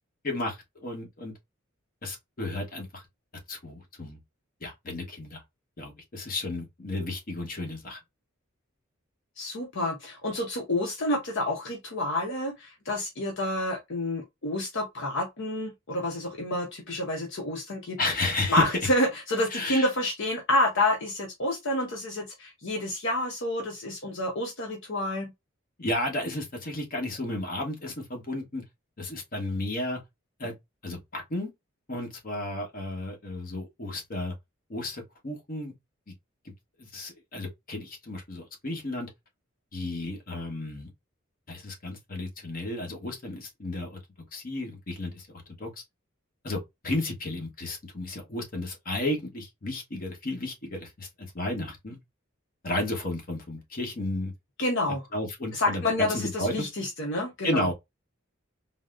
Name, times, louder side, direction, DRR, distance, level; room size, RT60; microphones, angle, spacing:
voice 1, 0.2-1.3 2.0-3.0 3.5-4.2 4.6-5.4 5.8-8.0 18.0-18.6 19.5-19.9 25.8-28.6 29.0-30.0 30.4-30.5 30.8-31.5 31.9-34.3 34.7-35.7 36.8-39.1 39.7-40.9 41.5-44.0 44.3-45.8 46.4-52.0 52.6-54.3 55.1-56.7 57.4-57.7, left 1 dB, 45° left, 1.1 m, -33 dB
voice 2, 9.4-18.0 18.5-25.3 54.6-55.0 55.5-57.7, left 1 dB, 65° left, 0.8 m, -29 dB
3.9 x 2.0 x 2.4 m
head